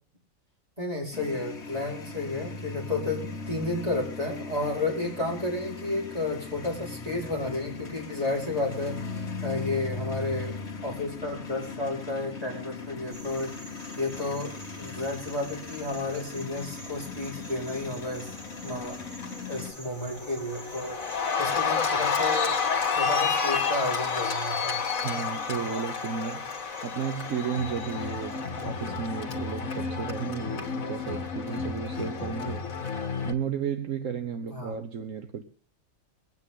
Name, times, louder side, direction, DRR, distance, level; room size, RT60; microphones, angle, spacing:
voice 1, 0.8-10.6 10.8-13.5 14.0-18.4 18.6-19.0 19.5-24.8 34.5-34.7, left 2 dB, 25° right, -3 dB, 5.1 m, -32 dB
sound 1, 1.1-19.7, left 4 dB, 55° left, 1.9 m, -38 dB
sound 2, 13.1-28.9, right 1 dB, 50° right, 4.4 m, -49 dB
Cheering, 18.5-18.9 19.2-33.3, left 5 dB, 80° left, 2.0 m, -30 dB
voice 2, 25.0-32.7 33.2-35.4, right 7 dB, 70° right, 8 dB, 1.3 m, -33 dB
23.0 x 9.1 x 3.8 m, 0.40 s
omnidirectional pair, 1.4 m